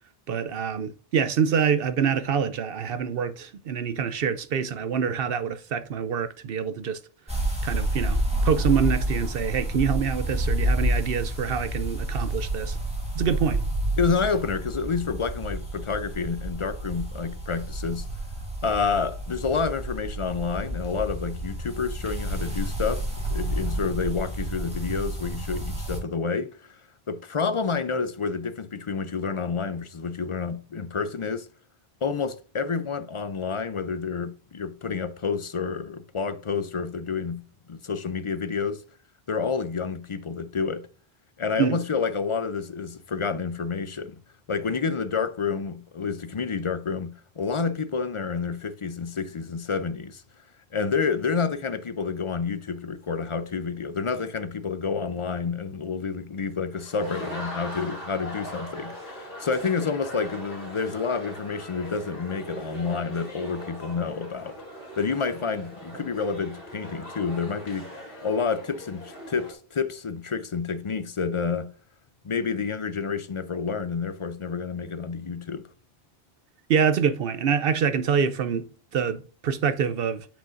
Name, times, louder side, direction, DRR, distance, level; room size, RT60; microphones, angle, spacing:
voice 1, 0.3-7.0 7.6-12.8 13.1-13.6 41.6-41.8 76.7-80.3, right 7 dB, 70° right, 0.8 m, -26 dB
sound 1, 7.3-26.0, right 1 dB, 5° right, 1.9 m, -29 dB
voice 2, 14.0-18.1 18.6-26.8 27.1-31.5 32.0-37.4 37.7-38.8 39.3-40.9 41.4-44.2 44.5-50.2 50.7-64.6 65.0-67.9 68.2-71.7 72.2-75.7, left 5 dB, 40° left, 0.4 m, -29 dB
sound 2, 56.7-69.5, equal, 60° left, 2.4 m, -40 dB
8.9 x 5.1 x 2.5 m
omnidirectional pair, 1.1 m